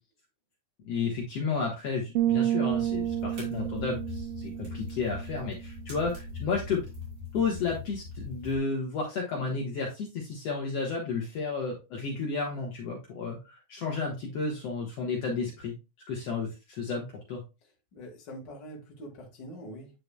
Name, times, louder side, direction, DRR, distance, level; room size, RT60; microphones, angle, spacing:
voice 1, 0.9-6.8 7.3-15.7 16.1-17.4, left 4 dB, 65° left, 2.2 m, -32 dB
sound 1, 2.2-5.9, right 12 dB, 90° right, 1.3 m, -30 dB
sound 2, 2.7-8.6, left 3 dB, 40° right, 3.7 m, -41 dB
voice 2, 17.9-19.9, equal, 40° left, 2.2 m, -44 dB
9.3 x 4.8 x 2.2 m
omnidirectional pair, 3.4 m